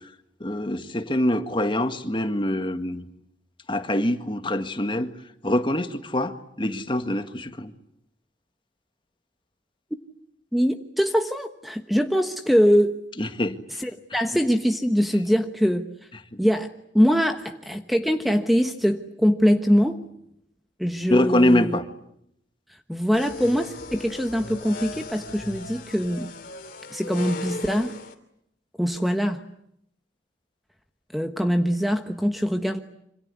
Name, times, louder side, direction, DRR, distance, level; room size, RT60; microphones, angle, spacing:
voice 1, 0.4-3.0 3.7-5.1 5.4-7.7 13.2-13.6 21.1-21.8, left 1 dB, 25° left, 8 dB, 1.8 m, -24 dB
voice 2, 10.5-13.0 13.7-15.9 16.4-20.0 20.8-21.8 22.9-26.3 26.9-27.9 28.8-29.4 31.1-32.8, equal, ahead, 6 dB, 1.1 m, -23 dB
sound 1, 23.1-28.1, left 2 dB, 50° left, 3.0 m, -37 dB
26.5 x 26.5 x 8.4 m, 0.75 s
head